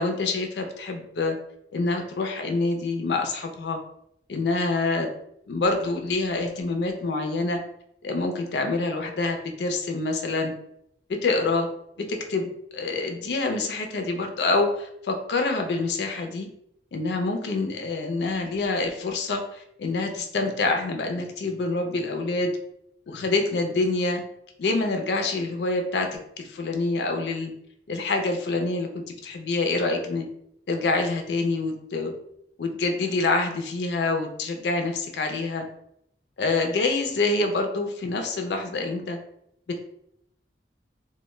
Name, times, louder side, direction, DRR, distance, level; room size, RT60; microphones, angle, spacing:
voice 1, 0.0-1.4 1.7-3.8 4.3-5.1 5.5-7.6 8.0-10.5 11.2-11.7 12.1-16.5 16.9-22.5 23.1-24.2 24.6-27.5 27.9-30.3 30.7-32.1 32.6-35.7 36.4-39.2 39.7-39.8, left 3 dB, 70° left, 4 dB, 0.4 m, -26 dB
2.1 x 2.1 x 3.0 m, 0.74 s
head